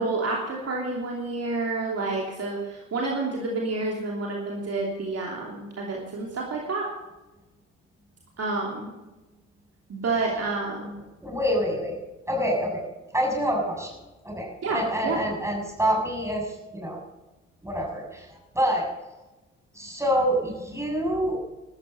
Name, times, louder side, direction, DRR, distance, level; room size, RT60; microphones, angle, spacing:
voice 1, 0.0-6.9 8.4-8.9 9.9-10.9 14.6-15.2, right 3 dB, 40° right, -1 dB, 3.0 m, -29 dB
voice 2, 11.2-12.0 12.3-12.8 13.1-13.9 14.2-17.0 17.6-18.3 18.5-18.9 19.7-21.4, equal, 5° right, 0 dB, 6.8 m, -26 dB
14.5 x 13.5 x 5.3 m, 1.1 s
figure-of-eight pair, 45°, 40 cm